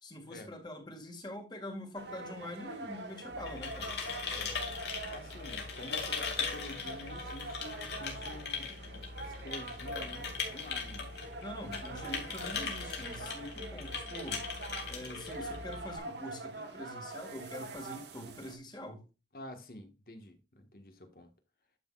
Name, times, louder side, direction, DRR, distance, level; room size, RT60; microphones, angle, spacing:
voice 1, 0.0-3.9 11.4-14.5 14.9-19.0, left 1 dB, 25° left, 2.1 m, -44 dB
sound 1, 2.0-18.6, right 2 dB, 75° right, 1.7 m, -45 dB
sound 2, 3.3-16.0, left 5 dB, 75° left, 2.9 m, -39 dB
voice 2, 5.1-11.1 11.8-12.2 19.3-21.3, left 1 dB, 55° left, 1.6 m, -49 dB
11.5 x 6.0 x 2.5 m
head